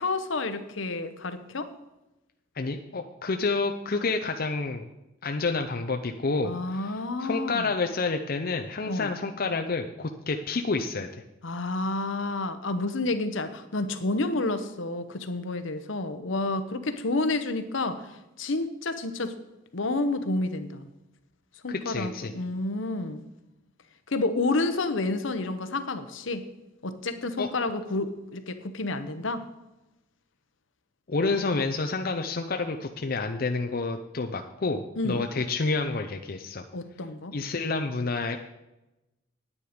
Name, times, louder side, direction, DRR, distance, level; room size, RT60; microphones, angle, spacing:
voice 1, 0.0-1.7 6.4-7.7 8.9-9.1 11.4-19.4 19.7-20.9 21.6-23.2 24.1-26.5 26.8-29.4 35.0-35.3 36.7-37.4, left 2 dB, 70° left, 10 dB, 0.9 m, -30 dB
voice 2, 2.6-4.9 5.2-6.9 7.2-11.1 21.7-22.3 27.4-27.5 31.1-36.6 37.3-38.4, left 3 dB, 45° left, 5 dB, 0.6 m, -29 dB
9.7 x 9.5 x 5.1 m, 0.96 s
head